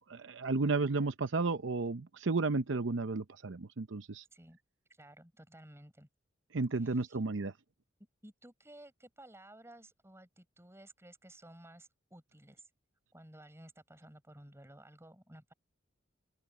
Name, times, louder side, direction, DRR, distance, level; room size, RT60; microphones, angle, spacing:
voice 1, 0.1-4.2 6.5-7.5, right 3 dB, 65° right, 0.7 m, -33 dB
voice 2, 4.9-6.1 6.7-7.2 8.2-12.6 13.1-15.5, right 1 dB, 15° right, 6.9 m, -55 dB
open air
head